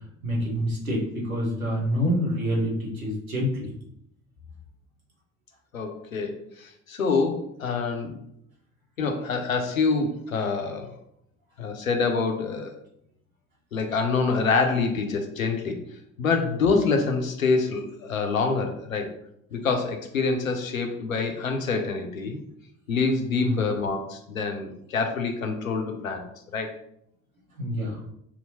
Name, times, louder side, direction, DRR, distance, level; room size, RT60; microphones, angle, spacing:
voice 1, 0.2-3.7 23.4-23.6 27.6-28.0, equal, 90° right, -3 dB, 1.0 m, -27 dB
voice 2, 5.7-8.2 9.0-10.9 11.6-12.7 13.7-15.8 16.2-19.1 19.5-22.4 22.9-26.3 26.5-26.8, left 4 dB, 90° left, 5 dB, 0.5 m, -26 dB
4.1 x 2.7 x 2.7 m, 0.74 s
figure-of-eight pair, 50°, 40 cm